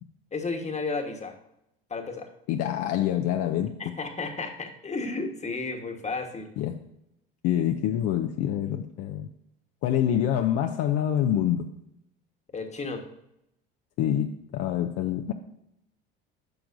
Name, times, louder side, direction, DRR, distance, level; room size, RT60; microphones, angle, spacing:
voice 1, 0.3-1.3 1.9-2.3 3.8-6.5 12.5-13.1, left 3 dB, 25° left, 5 dB, 1.3 m, -33 dB
voice 2, 2.5-3.7 6.6-6.8 7.4-9.3 9.8-11.7 14.0-15.3, left 10 dB, 55° left, 5 dB, 0.6 m, -26 dB
11.5 x 5.9 x 2.6 m, 0.81 s
hypercardioid pair, 75°, 29 cm